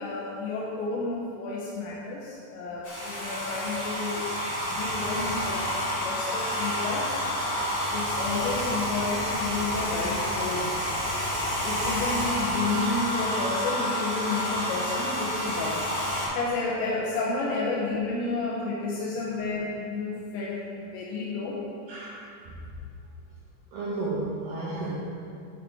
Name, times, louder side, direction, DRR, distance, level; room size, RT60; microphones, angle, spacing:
voice 1, 0.0-4.3 4.7-5.7 6.0-7.2 7.9-10.8 11.6-15.9 16.3-21.6, left 3 dB, 85° left, -4 dB, 3.1 m, -31 dB
Domestic sounds home sounds, 2.8-16.3, equal, 45° left, 1.8 m, -29 dB
voice 2, 21.9-22.6 23.7-25.0, right 2 dB, 75° right, -7 dB, 2.1 m, -33 dB
7.7 x 6.0 x 4.9 m, 2.4 s
omnidirectional pair, 5.3 m